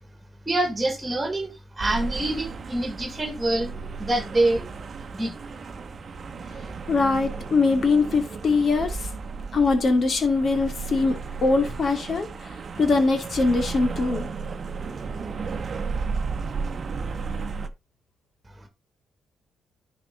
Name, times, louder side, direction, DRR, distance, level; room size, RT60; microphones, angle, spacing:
voice 1, 0.5-3.7 4.0-4.7 5.1-5.4, right 2 dB, 15° right, 2.3 m, -25 dB
sound 1, 1.8-17.7, right 4 dB, 45° right, 1.0 m, -34 dB
voice 2, 6.9-9.1 9.5-14.3, left 3 dB, 50° left, 2.5 m, -22 dB
10.5 x 5.1 x 4.0 m
cardioid pair, 90°, 0 cm